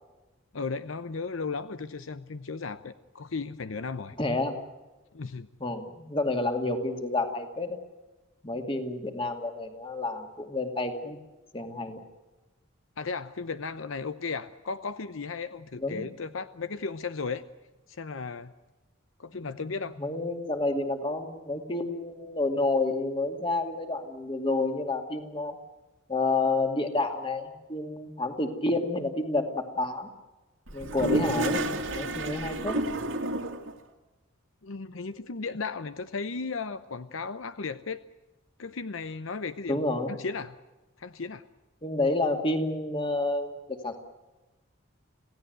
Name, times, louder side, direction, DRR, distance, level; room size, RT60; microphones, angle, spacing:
voice 1, 0.5-4.2 5.1-5.5 13.0-17.4 17.9-18.5 19.2-20.0 34.6-38.0 38.6-39.8 40.1-40.6 41.0-41.4, left 4 dB, 70° left, 12 dB, 0.8 m, -35 dB
voice 2, 4.2-4.6 5.6-7.8 8.4-11.2 11.5-12.0 15.7-16.1 20.0-25.6 26.1-30.1 30.7-31.6 31.9-32.8 39.7-40.1 41.8-44.0, left 2 dB, 25° left, 5 dB, 2.4 m, -29 dB
Toilet flush, 30.7-33.7, right 1 dB, 70° right, 2.5 m, -30 dB
27.0 x 17.0 x 8.0 m, 1.1 s
head